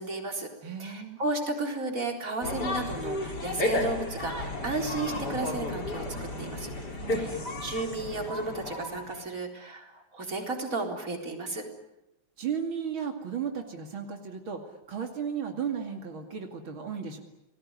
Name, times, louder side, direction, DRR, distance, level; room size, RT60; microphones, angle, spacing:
voice 1, 0.0-0.5 0.8-6.0 6.4-6.7 7.1-11.6, right 2 dB, 40° right, 2 dB, 4.5 m, -33 dB
voice 2, 0.6-1.2 6.9-7.4 12.4-17.2, right 7 dB, 85° right, 4 dB, 3.3 m, -35 dB
sound 1, 2.4-9.3, left 1 dB, 55° left, 4.6 m, -33 dB
29.5 x 20.0 x 9.8 m, 0.90 s
omnidirectional pair, 2.2 m